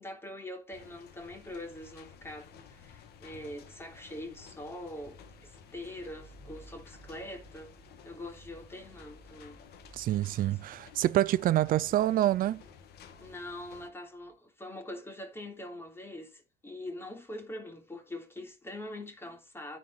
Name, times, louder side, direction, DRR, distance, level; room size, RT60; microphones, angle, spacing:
voice 1, 0.0-7.7 8.0-9.6 13.2-19.8, left 1 dB, 15° left, 3.3 m, -43 dB
sound 1, 0.7-13.9, left 7 dB, 70° left, 2.2 m, -54 dB
sound 2, 4.5-14.3, right 2 dB, 5° right, 3.3 m, -59 dB
voice 2, 9.9-12.6, right 13 dB, 55° right, 0.5 m, -27 dB
9.9 x 5.5 x 4.7 m
cardioid pair, 110°, 17 cm